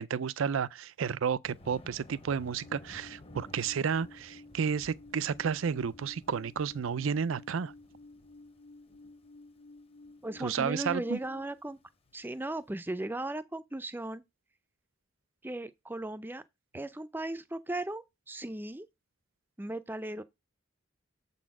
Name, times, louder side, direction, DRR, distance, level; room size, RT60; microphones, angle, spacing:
voice 1, 0.0-7.7 10.4-11.2, right 6 dB, 80° right, 0.4 m, -32 dB
Thunder, 1.4-12.5, left 1 dB, 30° left, 0.8 m, -56 dB
Alarm, 2.5-11.4, left 2 dB, 65° left, 1.5 m, -54 dB
voice 2, 10.2-11.8 12.1-14.2 15.4-16.4 16.7-18.9 19.6-20.2, right 1 dB, 10° right, 0.5 m, -37 dB
7.6 x 4.2 x 5.9 m
head